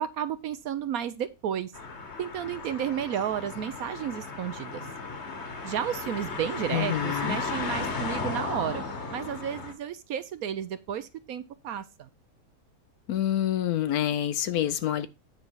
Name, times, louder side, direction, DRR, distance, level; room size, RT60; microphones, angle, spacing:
voice 1, 0.0-1.7 2.2-4.8 5.6-8.8 9.1-12.1, right 9 dB, 65° right, 1.0 m, -32 dB
sound 1, 1.7-9.7, left 4 dB, 45° left, 1.5 m, -35 dB
voice 2, 6.7-7.4 13.1-15.1, left 11 dB, 70° left, 1.1 m, -27 dB
8.8 x 5.3 x 4.6 m
omnidirectional pair, 1.8 m